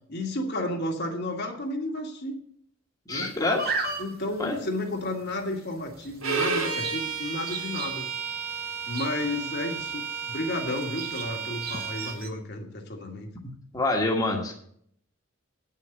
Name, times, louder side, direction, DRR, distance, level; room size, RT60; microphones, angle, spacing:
voice 1, 0.1-2.4 3.1-3.3 4.0-8.1 8.9-13.3, left 1 dB, 50° left, 2 dB, 1.8 m, -32 dB
voice 2, 3.1-3.7 4.4-4.6 13.7-14.5, left 2 dB, 15° left, -1 dB, 1.5 m, -26 dB
sound 1, 3.1-12.3, right 3 dB, 45° right, 1.6 m, -38 dB
Bowed string instrument, 6.2-12.2, right 5 dB, 80° right, 2.1 m, -32 dB
9.0 x 6.5 x 7.9 m, 0.64 s
head